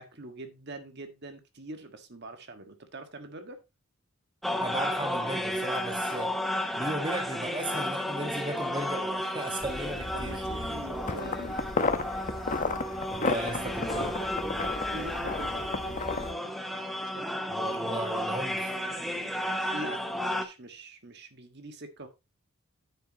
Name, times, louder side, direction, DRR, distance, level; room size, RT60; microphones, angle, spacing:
voice 1, 0.0-3.6 7.7-7.9 10.1-11.5 13.2-14.3 14.8-17.2 19.7-22.1, right 2 dB, 50° right, 1.5 m, -44 dB
sound 1, 4.4-20.4, left 1 dB, ahead, 1.0 m, -33 dB
voice 2, 4.6-6.3 6.8-10.7 13.1-14.1 17.5-18.7, right 1 dB, 20° right, 1.4 m, -36 dB
sound 2, 9.6-16.3, left 3 dB, 35° left, 0.9 m, -33 dB
9.7 x 8.1 x 2.8 m
head